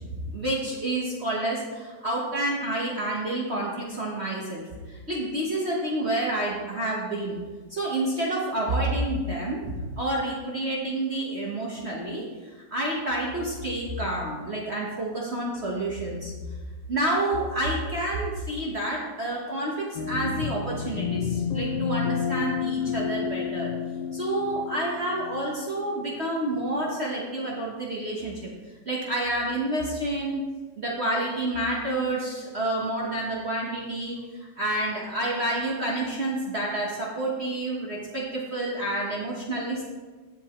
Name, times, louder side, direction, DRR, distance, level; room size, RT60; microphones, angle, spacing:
voice 1, 0.0-7.4 7.7-16.3 16.9-23.7 24.1-28.5 28.8-30.5 30.8-34.2 34.6-39.8, right 1 dB, 65° right, -4 dB, 0.6 m, -29 dB
sound 1, 20.0-26.5, left 6 dB, 70° left, 1.5 m, -30 dB
16.0 x 5.4 x 3.1 m, 1.3 s
omnidirectional pair, 3.3 m